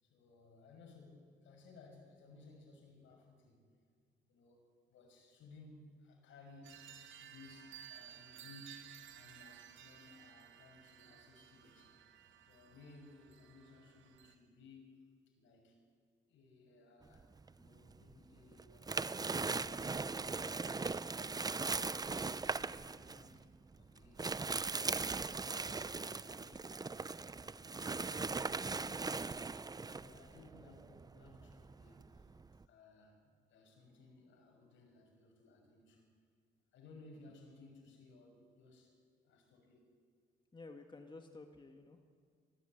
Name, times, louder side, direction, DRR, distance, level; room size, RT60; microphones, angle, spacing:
voice 1, 0.0-3.7 4.2-6.8 7.2-11.9 12.4-15.0 15.3-15.8 16.3-21.9 22.2-23.5 23.7-26.8 29.8-32.3 32.7-33.2 33.5-36.1 36.7-39.0 39.2-39.9, left 3 dB, 75° left, 2 dB, 6.2 m, -60 dB
sound 1, 6.6-14.3, right 10 dB, 75° right, 1.6 m, -56 dB
sound 2, 17.2-18.1 18.5-32.7, right 4 dB, 20° right, 0.6 m, -39 dB
voice 2, 40.5-42.1, left 3 dB, 25° left, 4 dB, 1.8 m, -53 dB
23.0 x 15.0 x 9.0 m, 2.1 s
cardioid pair, 90°, 20 cm